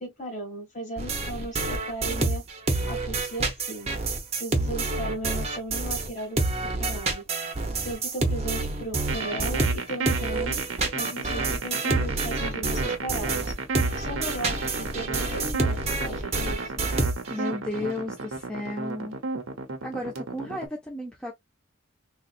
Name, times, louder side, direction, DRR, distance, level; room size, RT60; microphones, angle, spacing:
voice 1, 0.0-2.4 2.9-3.9 4.3-6.4 6.8-7.2 7.8-10.6 10.9-13.5 14.0-16.8 17.4-17.5 17.8-17.9, right 1 dB, 35° left, 1.8 m, -36 dB
sound 1, 1.0-6.1 6.4-17.5, right 3 dB, 30° right, 0.8 m, -28 dB
sound 2, 9.1-20.7, right 4 dB, 75° right, 0.8 m, -32 dB
voice 2, 17.3-19.2 19.8-21.3, left 1 dB, 5° left, 0.6 m, -33 dB
3.9 x 2.4 x 2.4 m
head